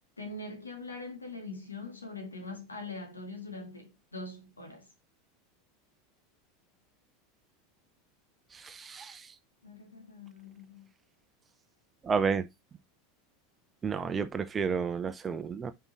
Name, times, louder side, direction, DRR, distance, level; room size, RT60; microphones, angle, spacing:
voice 1, 0.2-4.9 9.6-10.9, left 3 dB, 85° left, 2.0 m, -42 dB
voice 2, 8.5-9.3 12.0-12.5 13.8-15.7, right 5 dB, 20° right, 0.7 m, -31 dB
5.4 x 4.7 x 4.1 m
figure-of-eight pair, 80°, 0 cm